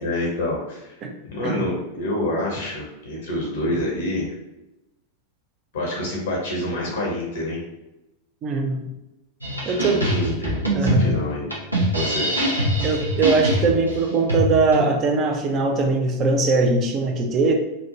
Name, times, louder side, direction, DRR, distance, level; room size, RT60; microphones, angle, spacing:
voice 1, 0.0-1.0 1.3-4.3 5.7-7.6 9.6-11.5 11.9-12.3, left 1 dB, 65° left, -2 dB, 0.6 m, -27 dB
voice 2, 8.4-8.9 9.7-10.1 10.8-11.1 12.8-17.5, right 3 dB, 30° right, 3 dB, 0.4 m, -21 dB
sound 1, 9.4-14.8, equal, 90° right, 0.7 m, -23 dB
2.9 x 2.0 x 2.5 m, 0.95 s
figure-of-eight pair, 90°, 0 cm